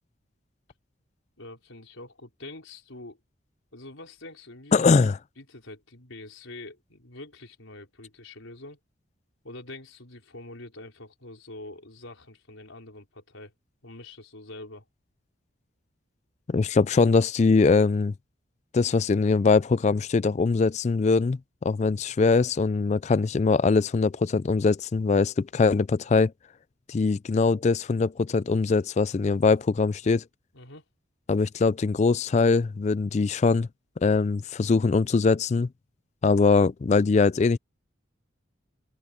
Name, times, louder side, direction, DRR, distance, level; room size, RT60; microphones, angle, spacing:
voice 1, 1.4-3.2 3.7-4.7 5.4-8.8 9.4-13.5 13.8-14.8 22.1-22.2 30.5-30.8, left 2 dB, 85° left, 4.7 m, -45 dB
voice 2, 4.7-5.2 16.5-18.1 18.7-26.3 26.9-30.2 31.3-33.7 34.0-35.7 36.2-37.6, left 4 dB, 35° left, 0.3 m, -22 dB
head